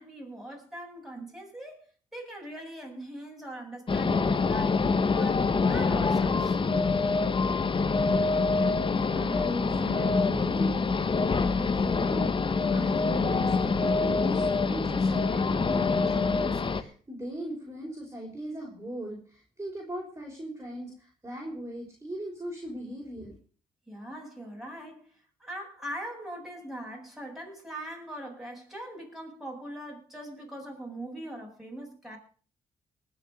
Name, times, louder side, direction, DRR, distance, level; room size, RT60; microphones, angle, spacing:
voice 1, 0.0-6.6 23.9-32.2, right 1 dB, ahead, -1 dB, 7.8 m, -41 dB
sound 1, 3.9-16.8, left 4 dB, 35° left, 1.1 m, -25 dB
voice 2, 8.9-23.3, equal, 20° right, -2 dB, 5.7 m, -39 dB
19.5 x 7.1 x 6.7 m, 0.42 s
supercardioid pair, 65°, 15 cm